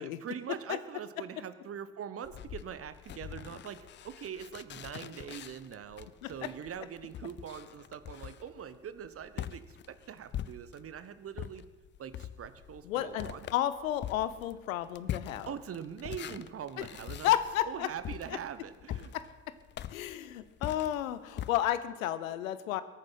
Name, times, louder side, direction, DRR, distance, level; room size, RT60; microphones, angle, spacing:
voice 1, 0.0-11.6 12.0-13.5 15.5-17.3 17.6-19.1, right 8 dB, 35° right, 13 dB, 1.0 m, -43 dB
sound 1, 2.2-11.0 11.3-21.5, left 11 dB, 25° left, 0.5 m, -43 dB
voice 2, 12.9-15.5 17.2-17.9 18.3-18.4 19.1-19.2 19.9-22.8, left 12 dB, 70° left, 14 dB, 0.8 m, -32 dB
22.0 x 9.0 x 5.6 m, 1.3 s
figure-of-eight pair, 55°, 42 cm